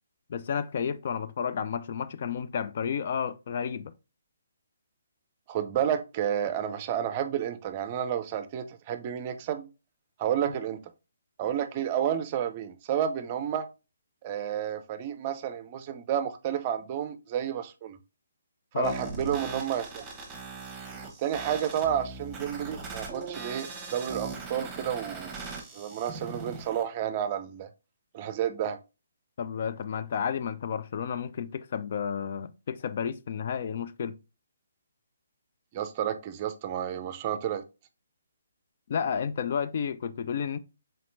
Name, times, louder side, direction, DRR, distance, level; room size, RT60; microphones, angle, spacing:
voice 1, 0.3-3.9 10.5-10.6 18.7-19.0 29.4-34.2 38.9-40.6, left 7 dB, 50° left, 0.3 m, -31 dB
voice 2, 5.5-9.7 10.2-10.8 11.4-13.7 14.2-18.0 18.8-20.1 21.2-25.3 25.7-27.7 28.1-28.8 35.7-37.6, right 9 dB, 35° right, 0.5 m, -31 dB
sound 1, 18.8-26.8, right 4 dB, 10° right, 1.1 m, -40 dB
4.2 x 3.9 x 2.5 m
figure-of-eight pair, 140°, 0 cm